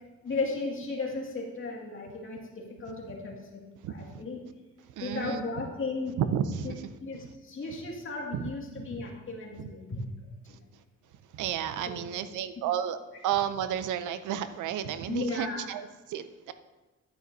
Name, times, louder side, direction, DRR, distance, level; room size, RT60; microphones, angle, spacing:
voice 1, 0.2-3.6 3.9-4.4 5.0-6.1 6.6-6.7 7.0-10.0 10.5-10.6 15.1-15.7, left 3 dB, 45° left, -1 dB, 2.1 m, -35 dB
voice 2, 3.8-4.2 5.0-5.5 6.2-6.8 8.3-8.5 11.3-16.5, right 9 dB, 80° right, 11 dB, 0.6 m, -32 dB
11.0 x 9.1 x 2.7 m, 1.2 s
cardioid pair, 90°, 30 cm